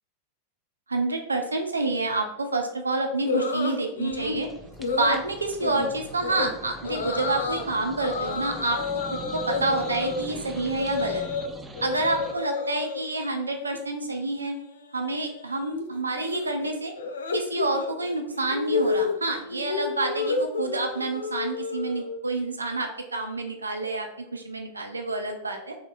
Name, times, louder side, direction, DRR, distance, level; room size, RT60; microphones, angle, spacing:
voice 1, 0.9-4.5 4.9-8.8 9.1-11.2 11.8-14.6 14.9-16.9 17.3-25.8, right 2 dB, 80° right, 4 dB, 0.5 m, -28 dB
sound 1, 3.2-4.4 4.8-5.2 5.6-5.9 6.2-6.5 6.8-7.6 8.0-11.5 11.7-13.0 13.4-13.8 14.0-22.2, left 4 dB, 65° left, 0.5 m, -31 dB
sound 2, 4.1-12.3, right 2 dB, 10° right, 0.5 m, -42 dB
4.9 x 4.0 x 2.5 m, 0.81 s
figure-of-eight pair, 90°, 0 cm